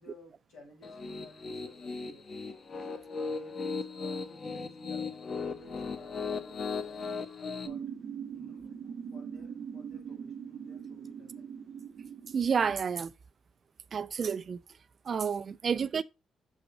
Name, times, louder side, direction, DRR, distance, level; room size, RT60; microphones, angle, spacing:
voice 1, 0.0-2.3 2.7-5.2 5.4-7.9 8.3-11.5, left 1 dB, 85° left, 4.8 m, -55 dB
Piano, 0.8-7.7, left 4 dB, 40° left, 0.9 m, -37 dB
sound 1, 7.7-12.7, right 7 dB, 70° right, 0.8 m, -42 dB
voice 2, 12.3-13.1 13.9-14.6 15.1-16.0, right 6 dB, 45° right, 0.4 m, -30 dB
6.3 x 4.7 x 3.8 m
cardioid pair, 90°, 0 cm